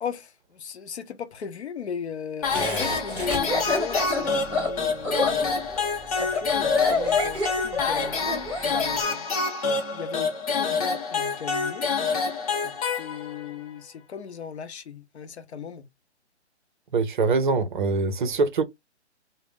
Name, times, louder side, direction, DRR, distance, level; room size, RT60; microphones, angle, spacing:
voice 1, 0.0-9.3 9.9-11.9 12.6-15.9, left 7 dB, 65° left, 0.7 m, -38 dB
sound 1, 2.4-13.5, left 4 dB, 30° left, 0.9 m, -27 dB
Laughter, 2.5-8.9, left 3 dB, 5° left, 0.5 m, -27 dB
voice 2, 16.9-18.6, right 4 dB, 45° right, 0.5 m, -23 dB
2.4 x 2.0 x 3.4 m
figure-of-eight pair, 140°, 35 cm